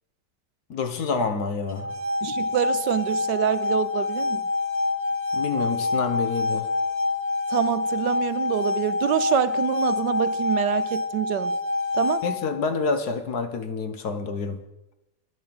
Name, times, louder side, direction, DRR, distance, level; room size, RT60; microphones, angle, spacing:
voice 1, 0.7-1.9 5.3-6.7 12.2-14.6, left 4 dB, 65° left, 1.6 m, -27 dB
sound 1, 1.7-12.7, left 3 dB, 30° right, 1.0 m, -26 dB
voice 2, 2.2-4.4 7.5-11.6 11.9-12.2, right 11 dB, 80° right, 1.3 m, -26 dB
11.0 x 11.0 x 7.7 m
omnidirectional pair, 1.9 m